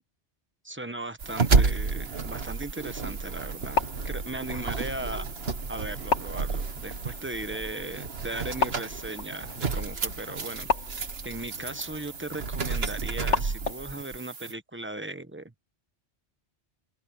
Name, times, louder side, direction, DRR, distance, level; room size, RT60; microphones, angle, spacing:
voice 1, 0.6-5.3 5.7-10.7 11.2-15.6, right 2 dB, 10° right, 1.0 m, -37 dB
sound 1, 1.2-14.5, right 4 dB, 60° right, 1.7 m, -31 dB
sound 2, 3.5-14.0, left 4 dB, 85° left, 2.1 m, -35 dB
open air
omnidirectional pair, 1.2 m